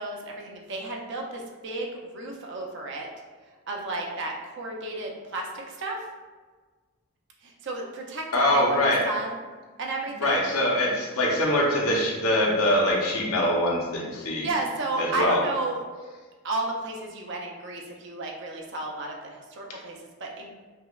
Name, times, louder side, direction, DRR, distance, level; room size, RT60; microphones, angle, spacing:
voice 1, 0.0-3.1 3.7-6.0 7.4-9.3 9.8-10.5 14.2-15.8 16.4-20.5, right 2 dB, 55° right, 0 dB, 0.5 m, -33 dB
voice 2, 8.3-9.0 10.2-14.5 15.0-15.4, left 1 dB, 80° left, -2 dB, 0.8 m, -23 dB
5.3 x 2.1 x 2.3 m, 1.4 s
head